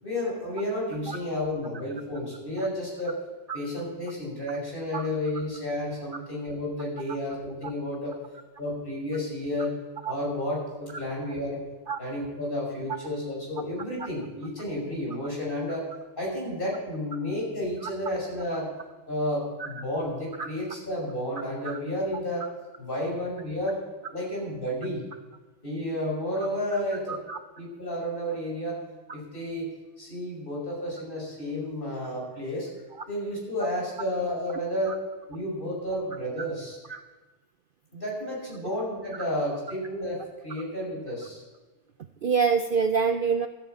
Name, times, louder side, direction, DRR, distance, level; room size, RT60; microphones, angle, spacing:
voice 1, 0.0-3.2 3.5-8.2 8.6-9.7 10.1-11.6 12.0-15.9 16.2-18.7 19.1-22.4 22.8-23.8 24.1-25.1 25.6-27.2 27.6-28.8 29.1-29.7 30.0-32.7 33.1-35.0 35.3-36.8 37.9-41.4, left 1 dB, 45° left, -3 dB, 6.0 m, -31 dB
voice 2, 27.1-27.4 34.9-35.0 36.9-37.0 42.2-43.5, right 6 dB, 55° right, 9 dB, 0.6 m, -26 dB
13.0 x 9.3 x 7.7 m, 1.2 s
omnidirectional pair, 1.3 m